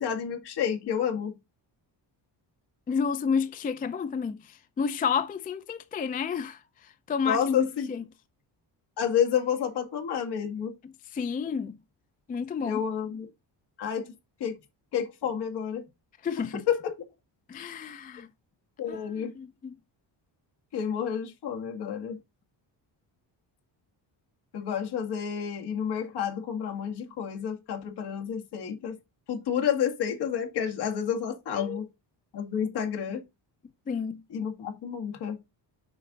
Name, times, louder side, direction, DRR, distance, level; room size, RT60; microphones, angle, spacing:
voice 1, 0.0-1.3 7.3-7.9 9.0-10.7 12.6-13.3 13.8-14.1 14.4-14.5 14.9-15.8 16.7-16.9 18.8-19.3 20.7-22.2 24.5-28.9 29.3-31.8 32.3-33.2 34.3-35.4, left 8 dB, 60° left, 2.1 m, -30 dB
voice 2, 2.9-8.0 10.8-11.8 12.3-12.8 16.2-16.7 17.5-18.3 18.9-19.8 31.5-31.8 33.9-34.2, left 6 dB, 20° left, 0.3 m, -31 dB
7.2 x 5.3 x 3.9 m
cardioid pair, 170°, 44 cm